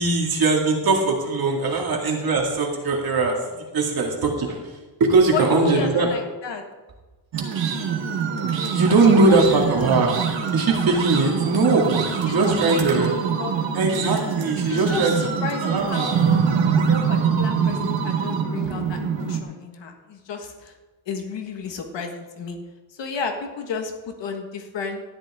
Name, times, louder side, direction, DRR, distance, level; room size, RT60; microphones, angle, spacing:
voice 1, 0.0-6.1 8.7-10.2 10.5-13.1 13.7-15.1 15.6-16.2, right 3 dB, 50° right, 0 dB, 2.3 m, -20 dB
voice 2, 5.3-6.6 9.1-9.4 12.3-12.5 12.9-13.5 14.7-16.5 16.8-20.7 21.1-22.6 22.9-25.0, left 4 dB, 70° left, 4 dB, 1.6 m, -31 dB
sound 1, 7.3-19.4, right 6 dB, 75° right, 1.4 m, -24 dB
12.5 x 10.5 x 3.6 m, 1.2 s
wide cardioid pair, 160°, 44 cm